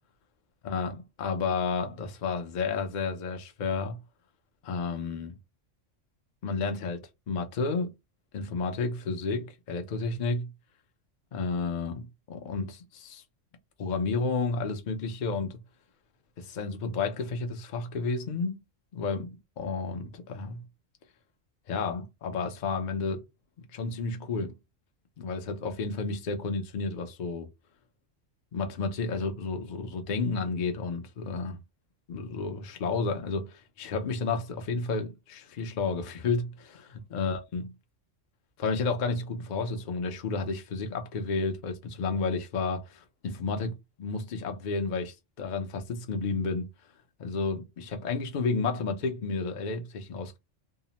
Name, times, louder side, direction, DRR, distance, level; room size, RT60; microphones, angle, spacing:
voice 1, 0.6-4.0 4.6-5.4 6.4-7.9 8.3-10.5 11.3-13.2 13.8-15.6 16.4-18.6 18.9-20.6 21.7-23.2 23.7-24.5 25.2-27.5 28.5-31.6 32.1-37.6 38.6-46.7 47.2-50.4, left 4 dB, 50° left, 0.5 m, -31 dB
2.7 x 2.0 x 2.8 m
omnidirectional pair, 1.3 m